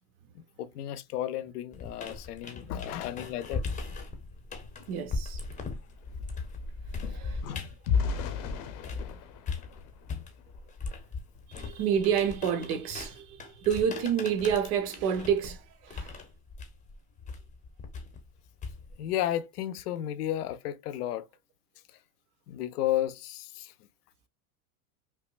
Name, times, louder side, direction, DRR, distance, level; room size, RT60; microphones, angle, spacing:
voice 1, 0.3-3.6 7.0-7.7 19.0-21.3 22.5-23.7, left 12 dB, 90° left, 0.7 m, -33 dB
sound 1, 1.7-9.1 9.5-19.1, left 4 dB, 15° left, 0.8 m, -39 dB
voice 2, 4.8-5.4 7.0-7.4 8.1-8.2 11.6-16.2, right 8 dB, 75° right, 1.2 m, -29 dB
sound 2, 4.9-5.0 5.3-10.8 11.3-11.5 11.8-12.1, left 6 dB, 45° left, 0.8 m, -35 dB
5.5 x 2.1 x 2.4 m
supercardioid pair, 130°, 45 cm